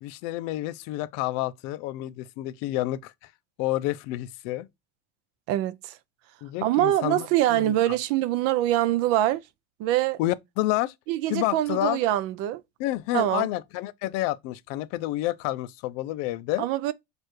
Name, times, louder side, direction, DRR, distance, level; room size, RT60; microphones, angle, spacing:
voice 1, 0.0-3.1 3.6-4.7 6.4-8.0 10.2-10.9 11.3-12.0 12.8-16.7, left 16 dB, 55° left, 0.4 m, -29 dB
voice 2, 5.5-6.0 6.6-9.4 9.8-10.2 11.1-12.6 13.1-13.5 16.6-16.9, right 14 dB, 50° right, 0.5 m, -24 dB
6.4 x 2.5 x 3.0 m
cardioid pair, 165°, 31 cm